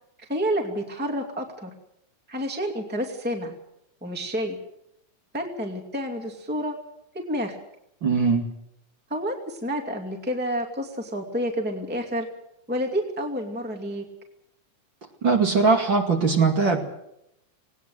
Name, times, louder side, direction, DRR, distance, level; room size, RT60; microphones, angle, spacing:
voice 1, 0.2-1.7 2.3-3.5 4.0-4.6 5.3-6.7 7.1-7.5 9.1-12.3 12.7-14.0, equal, 5° right, 3 dB, 2.0 m, -29 dB
voice 2, 8.0-8.5 15.2-16.8, right 4 dB, 40° right, 2 dB, 2.8 m, -20 dB
19.5 x 19.0 x 7.9 m, 0.81 s
omnidirectional pair, 3.4 m